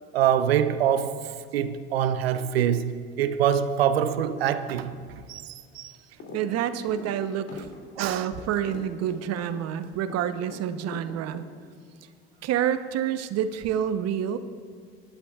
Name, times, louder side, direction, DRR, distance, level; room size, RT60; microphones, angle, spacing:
voice 1, 0.1-4.9 5.3-5.9 8.0-8.3, right 9 dB, 90° right, 0.6 m, -25 dB
sound 1, 6.2-6.5 6.8-10.6 10.9-11.8, left 3 dB, 55° left, 3.0 m, -42 dB
voice 2, 6.3-7.7 8.0-11.4 12.4-14.4, right 9 dB, 60° right, 0.9 m, -28 dB
20.0 x 11.5 x 2.4 m
hypercardioid pair, 65°, 29 cm